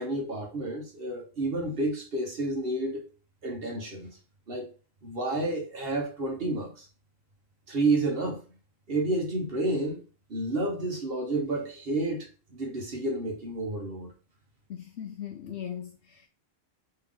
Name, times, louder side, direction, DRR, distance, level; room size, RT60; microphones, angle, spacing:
voice 1, 0.0-3.1 3.4-4.2 4.5-4.7 5.0-6.8 7.7-8.4 8.9-10.0 10.3-14.1, right 2 dB, 45° right, 1.1 m, -30 dB
voice 2, 14.7-16.3, left 9 dB, 65° left, 0.7 m, -39 dB
3.7 x 3.3 x 3.6 m
omnidirectional pair, 1.5 m